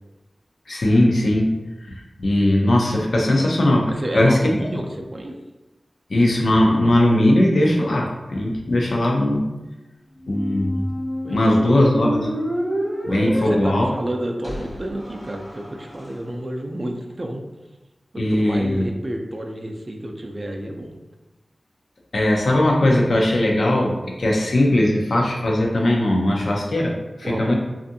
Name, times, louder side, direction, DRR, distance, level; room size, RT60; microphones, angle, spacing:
voice 1, 0.7-1.5 1.9-4.4 6.1-9.5 10.3-10.9 11.3-12.3 13.0-13.9 18.2-18.8 22.1-27.6, left 1 dB, 80° left, -1 dB, 0.5 m, -19 dB
voice 2, 3.9-5.4 11.2-11.4 11.8-11.9 13.1-17.4 18.1-21.0 27.2-27.6, right 1 dB, 40° right, 3 dB, 0.4 m, -30 dB
Squeak, 10.2-16.1, equal, 60° left, 1.1 m, -29 dB
2.5 x 2.4 x 2.6 m, 1.1 s
wide cardioid pair, 50°, 0 cm